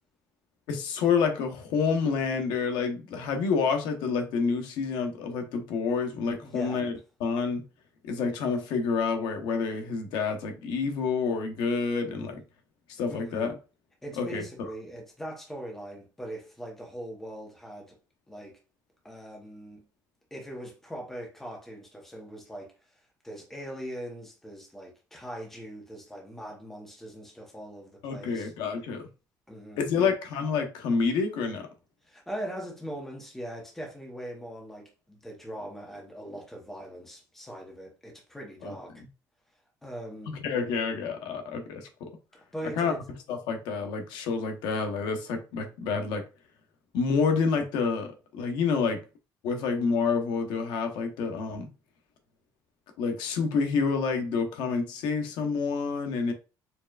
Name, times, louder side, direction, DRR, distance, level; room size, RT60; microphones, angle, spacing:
voice 1, 0.7-6.9 7.2-7.6 8.0-12.4 12.9-13.5 14.2-14.4 28.0-29.0 29.8-31.7 38.6-38.7 40.4-42.1 42.8-42.9 43.3-46.2 46.9-49.0 49.4-51.7 53.0-56.3, left 5 dB, 85° left, 0.9 m, -28 dB
voice 2, 6.4-6.8 13.1-13.5 14.0-18.0 18.3-18.6 19.0-19.8 20.3-28.5 29.5-30.1 32.0-38.9 39.8-40.4 42.3-43.0, right 1 dB, 5° left, 0.9 m, -41 dB
4.5 x 3.2 x 2.4 m
cardioid pair, 170°, 7 cm